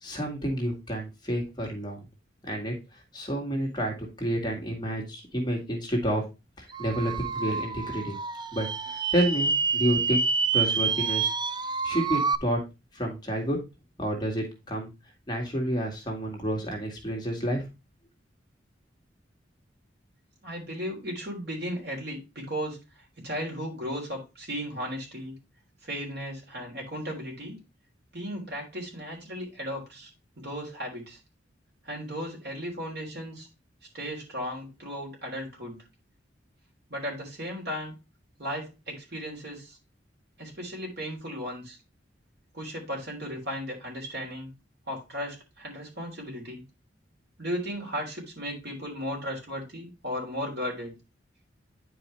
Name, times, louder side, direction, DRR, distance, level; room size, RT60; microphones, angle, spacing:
voice 1, 0.0-2.0 2.5-2.7 3.1-6.2 6.6-8.1 8.5-10.2 10.5-11.3 11.8-12.6 12.9-13.6 14.0-14.9 15.3-17.6, equal, 25° left, 0 dB, 1.9 m, -29 dB
sound 1, 6.7-12.4, right 5 dB, 25° right, 0.4 m, -28 dB
voice 2, 20.4-22.8 23.2-25.4 25.8-27.6 28.1-30.1 30.4-31.2 31.9-33.5 33.9-35.8 36.9-37.9 38.4-39.8 40.4-41.8 42.5-44.5 44.9-46.6 47.4-50.9, equal, 60° right, -1 dB, 3.5 m, -35 dB
9.7 x 4.8 x 3.1 m, 0.26 s
head